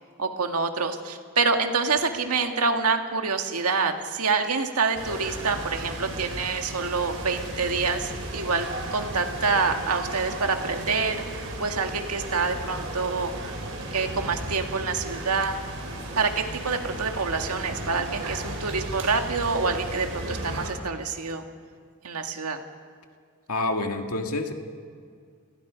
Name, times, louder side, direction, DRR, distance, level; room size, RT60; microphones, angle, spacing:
voice 1, 0.2-13.5 13.9-15.6 16.2-21.4 22.0-22.6, right 4 dB, 85° right, 5 dB, 1.9 m, -27 dB
sound 1, 4.9-20.7, right 1 dB, 65° right, 5.0 m, -35 dB
voice 2, 23.5-24.5, left 2 dB, 80° left, 4 dB, 2.0 m, -27 dB
29.5 x 20.5 x 5.2 m, 2.1 s
head